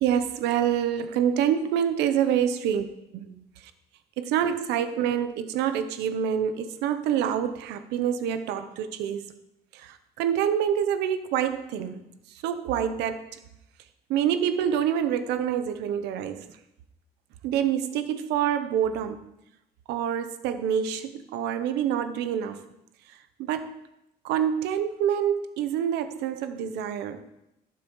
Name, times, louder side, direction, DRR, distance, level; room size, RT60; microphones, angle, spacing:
voice 1, 0.0-2.8 3.1-3.7 4.2-9.3 9.7-13.4 14.1-16.6 17.4-19.2 19.9-22.7 23.1-23.8 24.2-27.3, right 9 dB, 90° right, 10 dB, 0.8 m, -27 dB
16.0 x 7.0 x 3.1 m, 0.86 s
cardioid pair, 110°, 17 cm